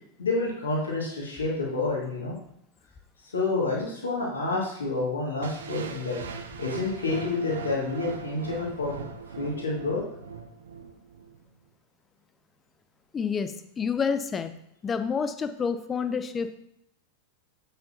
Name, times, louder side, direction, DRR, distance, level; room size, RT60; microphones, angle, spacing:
voice 1, 0.2-2.3 3.3-6.2 6.6-9.1 9.4-10.0, left 3 dB, 70° left, -3 dB, 2.1 m, -29 dB
sound 1, 5.4-11.4, right 5 dB, 65° right, 0.6 m, -40 dB
voice 2, 13.1-14.5 14.8-16.6, left 6 dB, 20° left, 10 dB, 0.6 m, -28 dB
8.0 x 6.5 x 2.8 m, 0.74 s
figure-of-eight pair, 90°, 0 cm